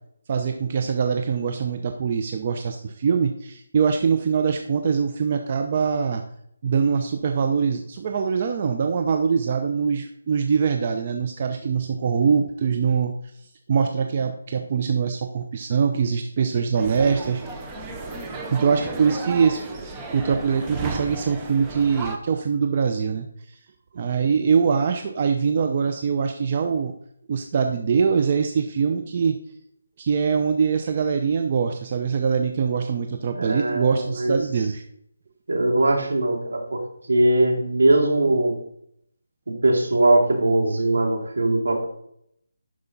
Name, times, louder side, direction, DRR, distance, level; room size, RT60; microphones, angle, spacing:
voice 1, 0.3-6.2 6.6-13.1 13.7-17.4 18.5-23.3 23.9-26.9 27.3-29.4 30.0-34.8, right 6 dB, 35° right, 5 dB, 0.6 m, -23 dB
sound 1, 16.8-22.2, right 3 dB, 15° right, 0.8 m, -34 dB
voice 2, 33.4-34.4 35.5-36.8 37.1-38.6 39.5-41.9, right 2 dB, 75° right, 2 dB, 2.5 m, -20 dB
11.5 x 5.0 x 4.0 m, 0.72 s
figure-of-eight pair, 160°, 0 cm